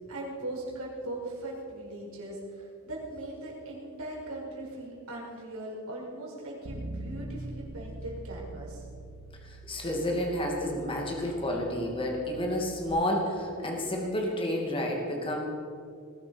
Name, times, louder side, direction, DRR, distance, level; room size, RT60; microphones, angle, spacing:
voice 1, 0.1-8.9, right 1 dB, 85° right, -3 dB, 4.9 m, -39 dB
Bass guitar, 6.6-12.9, right 2 dB, 65° right, 2.3 m, -43 dB
voice 2, 9.4-15.4, left 1 dB, 25° left, 0 dB, 2.5 m, -30 dB
20.0 x 12.0 x 5.3 m, 2.3 s
head